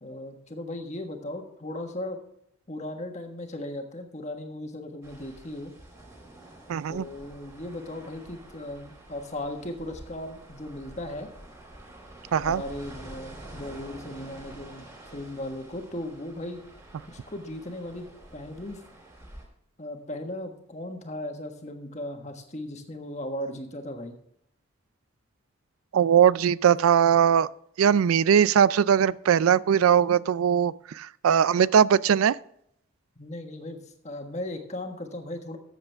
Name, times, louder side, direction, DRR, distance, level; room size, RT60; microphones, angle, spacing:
voice 1, 0.0-2.2 2.7-5.7 6.9-11.3 12.4-14.9 15.1-16.6 17.1-18.1 18.3-18.8 19.8-24.2 33.2-35.6, left 1 dB, 35° left, 1.4 m, -37 dB
sound 1, 5.0-19.4, right 1 dB, 15° right, 2.9 m, -47 dB
voice 2, 6.7-7.1 12.3-12.6 25.9-27.5 27.8-32.4, right 8 dB, 90° right, 0.4 m, -20 dB
13.5 x 8.0 x 3.4 m
head